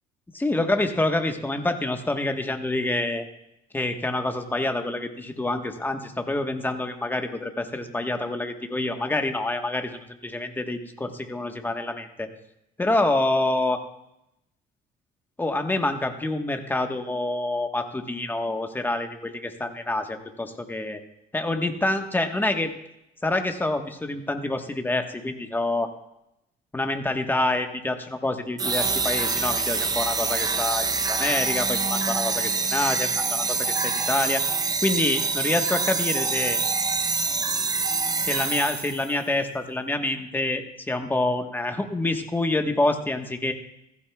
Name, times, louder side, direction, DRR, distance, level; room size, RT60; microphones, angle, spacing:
voice 1, 0.3-3.3 3.7-12.3 12.8-13.8 15.4-21.0 21.3-22.7 23.2-25.9 26.7-34.4 34.8-36.6 38.2-43.5, left 2 dB, 10° left, 5 dB, 1.2 m, -27 dB
sound 1, 28.6-39.1, right 4 dB, 20° right, 0.7 m, -25 dB
15.5 x 15.0 x 2.3 m, 0.83 s
cardioid pair, 110°, 17 cm